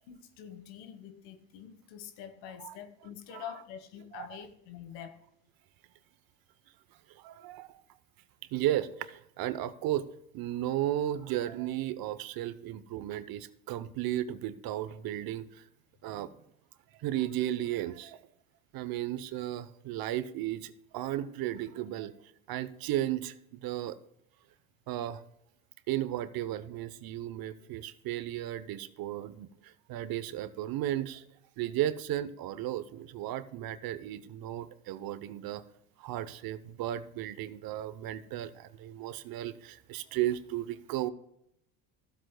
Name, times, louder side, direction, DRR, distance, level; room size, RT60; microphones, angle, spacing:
voice 1, 0.1-5.2, left 9 dB, 75° left, 1.4 m, -46 dB
voice 2, 7.1-7.8 8.5-10.1 10.3-15.6 16.0-16.3 16.9-18.2 18.7-22.1 22.5-24.0 24.9-25.2 25.9-31.2 31.6-35.6 36.0-41.1, right 13 dB, 55° right, 0.8 m, -34 dB
15.0 x 7.7 x 2.3 m
supercardioid pair, 90°, 44 cm